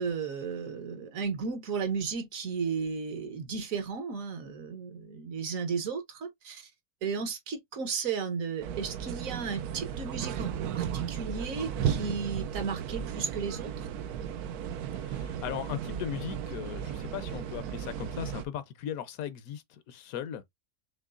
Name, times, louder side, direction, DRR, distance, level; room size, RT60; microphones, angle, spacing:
voice 1, 0.0-6.7 7.0-13.9, right 5 dB, 65° right, 1.3 m, -34 dB
sound 1, 8.6-18.4, right 8 dB, 85° right, 1.1 m, -35 dB
voice 2, 15.0-20.4, left 9 dB, 70° left, 1.1 m, -38 dB
5.8 x 3.0 x 2.4 m
omnidirectional pair, 1.6 m